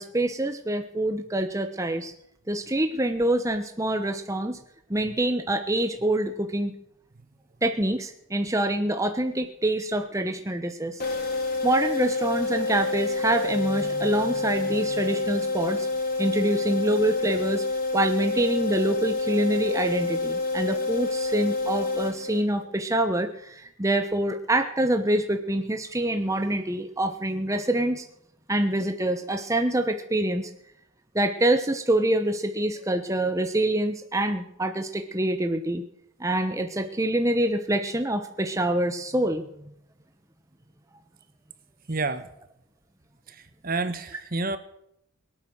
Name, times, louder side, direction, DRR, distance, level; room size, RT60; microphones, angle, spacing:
voice 1, 0.0-2.1 2.5-4.6 4.9-6.7 7.6-11.0 11.6-15.9 16.2-17.6 17.9-28.0 28.5-30.5 31.1-35.8 36.2-39.4, right 1 dB, 15° right, 6 dB, 0.9 m, -26 dB
sound 1, 11.0-22.7, left 3 dB, 40° left, 5.0 m, -28 dB
voice 2, 41.9-42.3 43.3-44.6, right 3 dB, 40° right, 11 dB, 1.2 m, -29 dB
23.0 x 9.1 x 6.4 m, 0.74 s
head